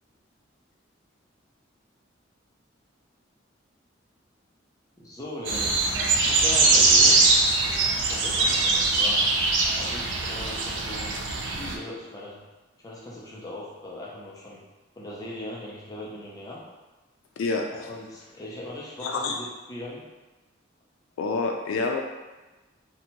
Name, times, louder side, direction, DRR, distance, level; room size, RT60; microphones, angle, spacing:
voice 1, 5.0-5.8 6.2-7.2 8.0-9.4 9.8-12.4 12.8-14.6 15.0-16.6 17.8-20.0, left 1 dB, 20° left, -5 dB, 0.4 m, -39 dB
sound 1, 5.4-11.7, right 3 dB, 65° right, 0.3 m, -22 dB
voice 2, 19.0-19.4 21.2-22.0, left 4 dB, 85° left, 2 dB, 0.3 m, -27 dB
2.7 x 2.1 x 2.8 m, 1.1 s
head